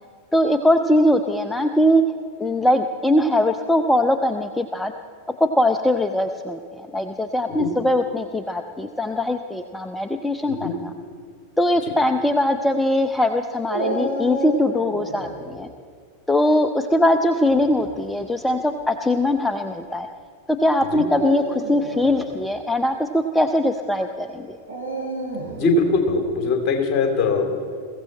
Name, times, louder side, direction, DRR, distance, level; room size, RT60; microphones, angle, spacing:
voice 1, 0.3-2.0 2.4-4.9 5.4-10.9 11.6-15.7 16.3-20.1 20.5-24.6, left 1 dB, 5° left, 7 dB, 0.6 m, -21 dB
Dog, 13.7-15.4 17.4-17.9 18.7-18.8 21.0-22.2 24.7-25.7, right 1 dB, 75° right, 5.3 m, -29 dB
voice 2, 25.5-27.5, left 3 dB, 35° left, 4 dB, 2.7 m, -21 dB
21.5 x 15.5 x 4.3 m, 2.1 s
figure-of-eight pair, 90°, 0 cm